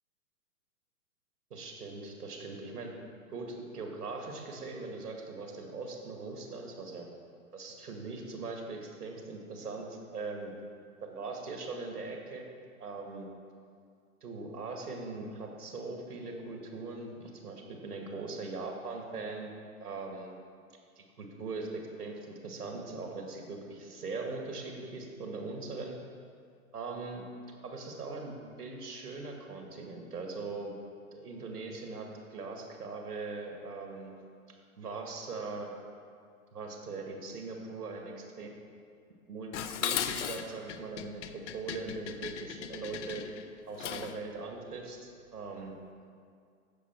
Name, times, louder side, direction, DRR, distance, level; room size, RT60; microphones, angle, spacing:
voice 1, 1.5-2.9 3.3-7.1 7.5-10.5 11.0-12.5 12.8-13.3 14.2-19.5 19.8-20.4 21.0-21.7 22.0-26.0 26.7-27.2 27.6-30.7 31.1-34.1 34.8-35.7 36.5-38.5 39.3-43.2 43.7-45.7, right 3 dB, 85° right, 1 dB, 1.9 m, -40 dB
Dishes pots and pans, 39.5-44.2, left 9 dB, 50° left, 0.7 m, -37 dB
15.0 x 5.3 x 4.4 m, 2.2 s
hypercardioid pair, 120°, 45 cm